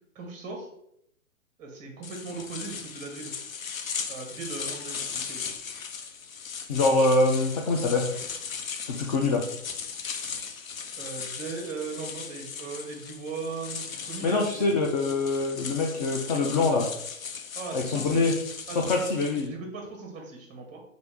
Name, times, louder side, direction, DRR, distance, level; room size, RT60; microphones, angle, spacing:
voice 1, 0.1-0.7 1.6-3.3 4.1-5.4 11.0-14.6 17.5-18.3 18.7-20.8, right 4 dB, 20° right, 2 dB, 0.9 m, -38 dB
sound 1, 2.0-19.5, left 6 dB, 75° left, 0.7 m, -38 dB
voice 2, 6.7-8.1 8.9-9.4 14.2-16.9 17.7-18.3 18.8-19.5, left 3 dB, 30° left, 1 dB, 0.4 m, -24 dB
4.4 x 2.7 x 3.3 m, 0.75 s
hypercardioid pair, 130°, 41 cm